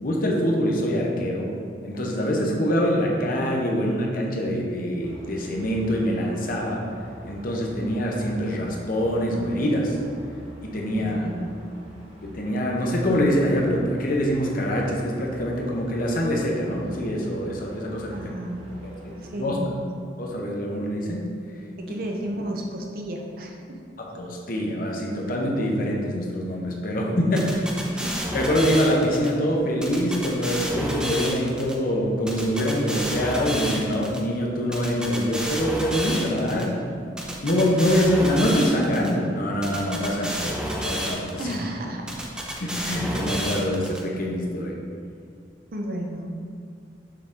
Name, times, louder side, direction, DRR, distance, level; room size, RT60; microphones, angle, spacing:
voice 1, 0.0-1.5 1.8-6.8 7.3-10.0 10.6-11.3 12.2-18.1 19.0-19.6 20.2-21.3 24.0-27.6 28.3-36.9 37.4-41.5 42.6-44.8, equal, 50° left, -1 dB, 0.8 m, -24 dB
sound 1, 5.0-19.5, right 1 dB, 35° right, 1.1 m, -45 dB
voice 2, 11.0-11.5 18.1-18.8 19.2-19.7 21.8-23.8 27.9-28.3 41.4-42.2 43.2-43.4 45.7-46.3, right 1 dB, 55° right, 1 dB, 0.7 m, -33 dB
sound 2, 27.4-29.3 29.8-31.7 32.3-34.2 34.7-36.6 37.2-39.1 39.6-41.5 42.1-44.0, equal, 5° right, 0.6 m, -30 dB
6.6 x 3.8 x 3.7 m, 2.4 s
head